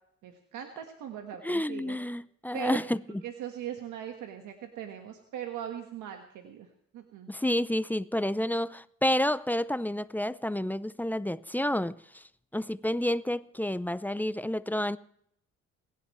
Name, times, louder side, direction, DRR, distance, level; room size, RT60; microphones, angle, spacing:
voice 1, 0.2-2.0 2.5-2.8 3.2-6.7 6.9-7.3, right 10 dB, 90° right, 1.6 m, -40 dB
voice 2, 1.4-3.0 7.3-12.2 12.5-15.0, left 1 dB, 5° left, 0.5 m, -29 dB
29.0 x 11.0 x 3.2 m
cardioid pair, 90°, 30 cm